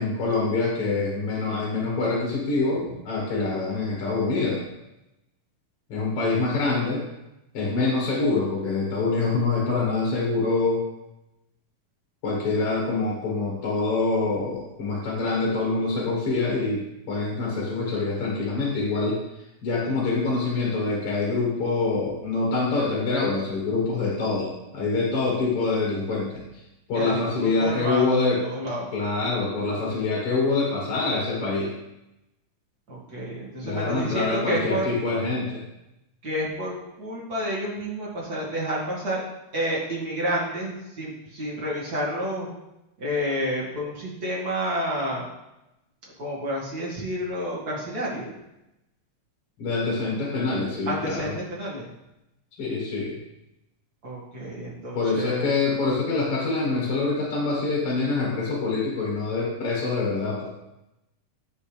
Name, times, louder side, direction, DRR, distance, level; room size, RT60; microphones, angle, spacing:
voice 1, 0.0-4.6 5.9-7.0 7.5-10.8 12.2-19.2 19.6-26.4 26.9-28.4 28.9-31.7 33.6-35.6 49.6-51.3 52.6-53.2 54.9-60.5, left 3 dB, 55° left, -4 dB, 2.1 m, -25 dB
voice 2, 26.9-28.1 28.4-28.9 32.9-34.9 36.2-39.2 39.5-42.5 43.0-45.2 46.2-48.3 50.9-51.9 54.0-55.5, equal, 35° right, -5 dB, 2.3 m, -30 dB
9.5 x 5.8 x 3.3 m, 0.92 s
omnidirectional pair, 3.6 m